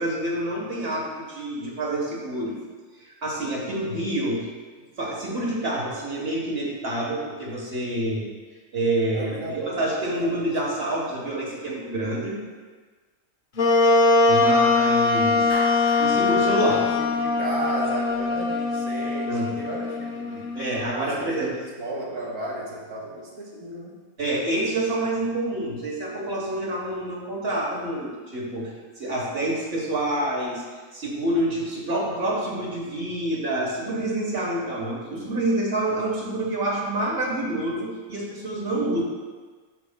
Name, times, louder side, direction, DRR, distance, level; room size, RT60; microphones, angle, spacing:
voice 1, 0.0-2.6 3.0-4.4 5.0-8.3 8.7-12.4 14.3-15.4 16.0-16.8 19.3-19.5 20.5-21.5 24.2-30.6 30.9-39.0, right 1 dB, 45° right, -2 dB, 1.4 m, -27 dB
voice 2, 9.1-10.8 16.6-20.5 21.0-24.0, right 2 dB, 60° right, -3 dB, 1.5 m, -34 dB
Wind instrument woodwind instrument, 13.6-21.0, left 3 dB, 50° left, 0.6 m, -22 dB
Clapping, 15.5-17.8, equal, 80° left, 2.8 m, -38 dB
12.5 x 4.7 x 2.2 m, 1.4 s
omnidirectional pair, 1.6 m